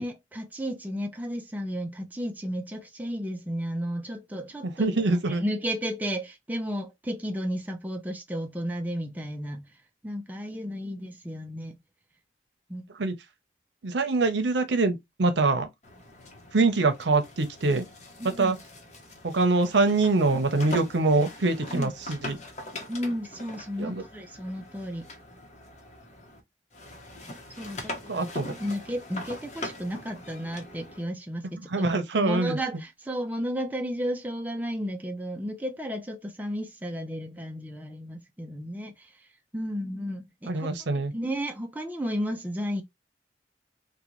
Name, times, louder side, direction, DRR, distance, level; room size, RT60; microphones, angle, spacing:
voice 1, 0.0-4.9 5.3-9.8 10.0-11.8 12.7-12.8 18.2-18.5 21.7-21.9 22.9-25.1 27.6-39.3 39.5-42.8, equal, 10° right, 0.4 m, -33 dB
voice 2, 4.6-5.4 13.0-13.1 13.8-15.7 16.5-17.9 18.4-18.6 19.2-22.4 23.8-24.0 28.1-28.5 31.7-32.6 40.5-41.1, right 3 dB, 80° right, 0.7 m, -24 dB
sound 1, 15.8-26.4 26.7-31.1, left 2 dB, 40° left, 0.9 m, -42 dB
3.8 x 2.2 x 3.0 m
head